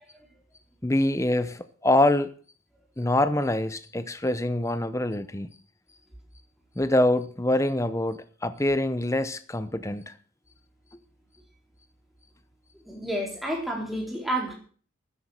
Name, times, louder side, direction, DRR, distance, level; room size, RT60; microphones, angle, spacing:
voice 1, 0.8-2.3 3.0-5.5 6.8-10.1, left 1 dB, 15° left, 0.8 m, -25 dB
voice 2, 12.9-14.5, right 1 dB, ahead, 4.4 m, -30 dB
13.5 x 10.0 x 6.6 m
head